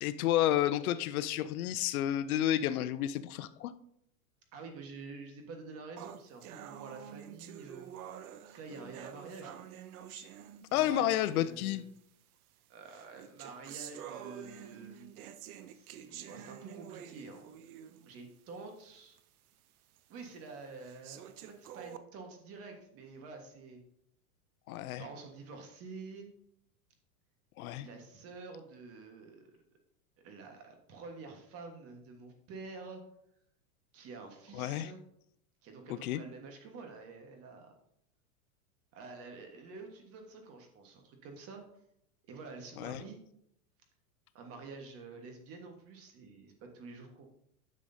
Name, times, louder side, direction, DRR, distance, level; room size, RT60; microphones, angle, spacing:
voice 1, 0.0-3.7 10.2-10.3 10.7-11.8 24.7-25.1 27.6-27.9 34.5-34.9 36.0-36.2 42.8-43.0, left 12 dB, 70° left, 14 dB, 0.6 m, -31 dB
voice 2, 4.5-7.9 8.5-9.5 10.7-11.9 12.7-15.3 15.7-17.4 18.0-19.2 20.1-23.8 25.0-26.3 27.7-29.6 30.2-33.0 33.9-35.0 35.6-37.7 38.9-41.6 42.3-43.2 44.3-47.3, right 4 dB, 30° right, 4 dB, 1.4 m, -48 dB
sound 1, 6.0-11.1 12.0-12.1 12.9-18.1 18.5-18.6 19.2-19.3 20.0-20.1 20.8-22.0, right 10 dB, 75° right, 0.7 m, -48 dB
10.5 x 6.4 x 2.7 m, 0.74 s
supercardioid pair, 145°, 44 cm